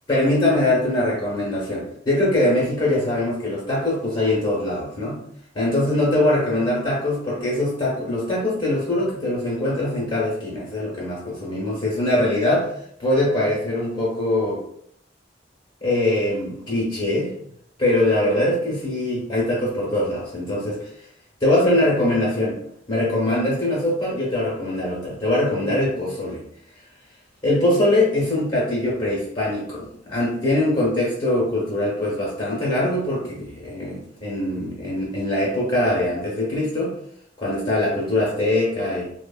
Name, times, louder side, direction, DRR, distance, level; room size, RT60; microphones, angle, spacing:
voice 1, 0.1-5.2 5.5-12.7 13.0-14.6 15.8-17.3 17.8-20.9 21.4-22.6 22.9-26.4 27.4-36.9 37.4-39.1, left 1 dB, 30° left, -5 dB, 0.9 m, -22 dB
3.1 x 2.1 x 2.4 m, 0.69 s
head